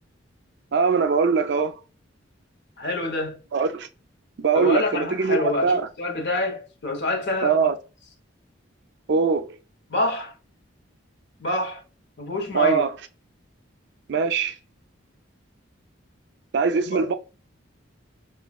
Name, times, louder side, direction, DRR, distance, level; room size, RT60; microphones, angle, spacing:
voice 1, 0.7-1.7 3.5-3.9 4.4-5.8 7.4-7.7 9.1-9.5 12.5-12.9 14.1-14.6 16.5-17.1, right 5 dB, 55° right, 0.3 m, -21 dB
voice 2, 2.8-3.4 4.5-7.7 9.9-10.3 11.4-11.8 12.2-12.8 16.7-17.0, left 2 dB, 55° left, 0.9 m, -27 dB
5.0 x 2.4 x 2.3 m
head